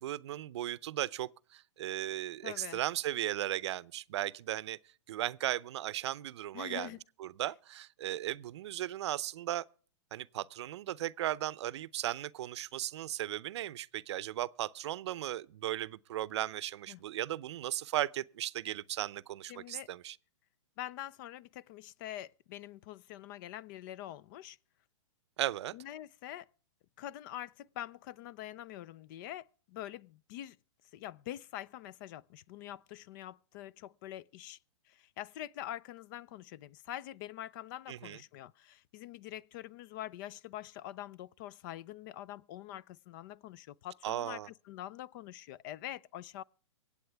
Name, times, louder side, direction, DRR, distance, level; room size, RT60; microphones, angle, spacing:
voice 1, 0.0-4.8 5.1-6.9 7.2-9.6 10.1-20.2 25.4-25.7 37.9-38.2 44.0-44.5, right 13 dB, 60° right, 0.6 m, -36 dB
voice 2, 2.4-2.8 6.5-7.0 16.9-17.0 19.5-19.9 20.8-24.6 25.7-26.5 27.0-30.6 30.9-34.6 34.9-46.4, left 13 dB, 40° left, 0.5 m, -45 dB
25.0 x 8.6 x 3.4 m
hypercardioid pair, 135°, 16 cm